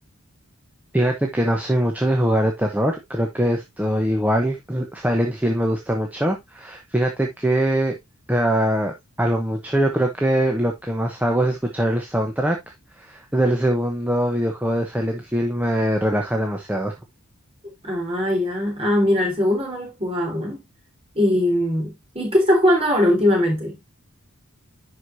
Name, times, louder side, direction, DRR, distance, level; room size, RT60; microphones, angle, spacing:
voice 1, 0.9-7.9 8.3-12.6 13.0-16.9, right 1 dB, 5° right, 0.9 m, -22 dB
voice 2, 17.8-20.6 21.1-23.8, left 1 dB, 25° right, 3.9 m, -20 dB
11.0 x 4.8 x 2.7 m
head